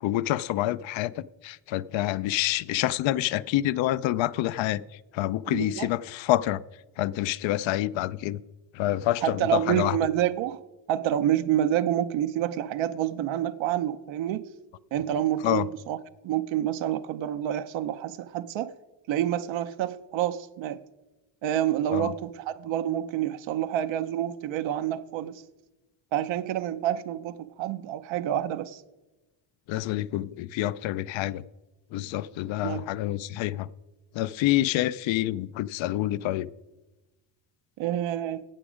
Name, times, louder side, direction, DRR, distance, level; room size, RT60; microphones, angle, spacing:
voice 1, 0.0-4.8 5.1-6.6 7.0-8.4 8.7-10.0 15.4-15.7 21.9-22.1 29.7-31.4 31.9-33.7 34.1-36.5, left 15 dB, 85° left, 0.5 m, -27 dB
voice 2, 5.5-5.9 9.2-10.6 10.9-14.4 14.9-16.0 16.2-18.7 19.1-20.8 21.4-25.4 26.1-28.8 32.5-32.9 37.8-38.4, right 11 dB, 90° right, 0.6 m, -28 dB
16.5 x 6.1 x 5.0 m
cardioid pair, 125°, 45 cm